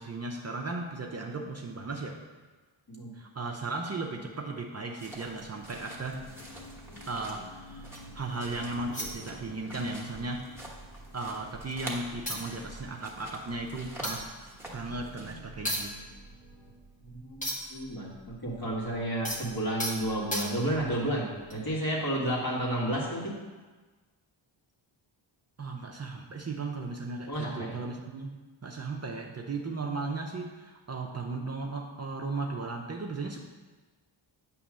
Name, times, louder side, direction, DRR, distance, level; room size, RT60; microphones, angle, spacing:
voice 1, 0.0-2.2 3.1-6.3 7.1-10.5 11.1-14.3 14.7-16.0 25.6-28.3 28.6-33.4, right 3 dB, 35° right, 0 dB, 0.5 m, -36 dB
sound 1, 5.0-15.3, right 1 dB, 5° right, 1.1 m, -47 dB
sound 2, 5.7-16.8, left 1 dB, 75° left, 1.9 m, -51 dB
sound 3, 6.7-8.2 8.9-9.8 10.1-10.3 10.6-11.5 11.9-12.0 12.3-17.9 18.1-20.9 21.5-21.7, equal, 15° left, 0.9 m, -38 dB
voice 2, 17.0-23.3 27.3-27.8, right 1 dB, 45° left, -4 dB, 1.8 m, -31 dB
8.6 x 3.1 x 6.1 m, 1.3 s
wide cardioid pair, 135°, 49 cm